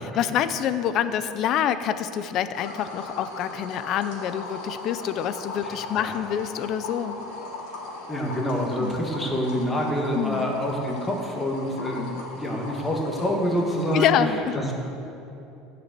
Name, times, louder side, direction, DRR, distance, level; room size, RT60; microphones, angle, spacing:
voice 1, 0.1-7.2 8.8-9.0 10.1-10.5 12.0-12.2 13.9-14.7, left 9 dB, 40° left, 12 dB, 0.5 m, -26 dB
sound 1, 2.5-14.0, left 3 dB, 85° left, 3.3 m, -38 dB
voice 2, 5.6-6.1 8.1-14.2 14.5-14.7, equal, 10° left, 0 dB, 1.5 m, -27 dB
14.0 x 7.0 x 7.5 m, 2.8 s
cardioid pair, 165°, 0 cm